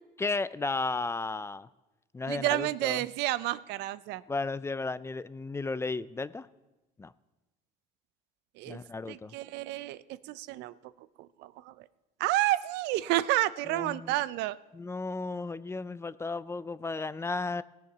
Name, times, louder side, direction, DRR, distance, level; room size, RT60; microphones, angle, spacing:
voice 1, 0.2-1.7 2.1-3.0 4.3-6.5 7.0-7.1 8.7-9.3 13.7-14.1 14.7-17.6, left 3 dB, 15° left, 16 dB, 0.3 m, -34 dB
voice 2, 2.3-4.2 8.6-8.8 9.1-10.7 11.4-11.7 12.2-14.6, right 16 dB, 90° right, 17 dB, 0.4 m, -30 dB
17.5 x 7.2 x 6.0 m, 1.1 s
cardioid pair, 110°, 17 cm